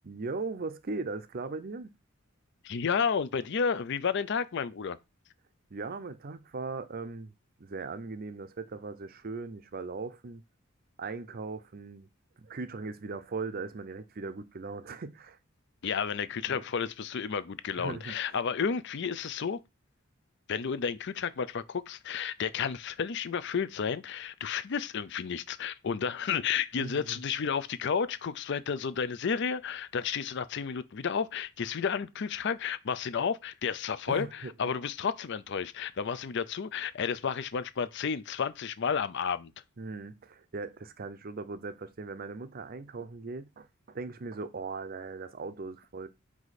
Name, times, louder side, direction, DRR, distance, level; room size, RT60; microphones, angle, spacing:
voice 1, 0.0-1.9 5.7-7.3 7.6-10.4 11.0-12.1 12.4-15.4 16.5-16.6 17.8-18.2 26.8-27.2 34.1-34.5 39.8-46.1, right 3 dB, 45° right, 0.6 m, -39 dB
voice 2, 2.6-5.0 15.8-19.6 20.5-39.5, left 6 dB, 55° left, 0.5 m, -31 dB
4.9 x 4.8 x 4.1 m
head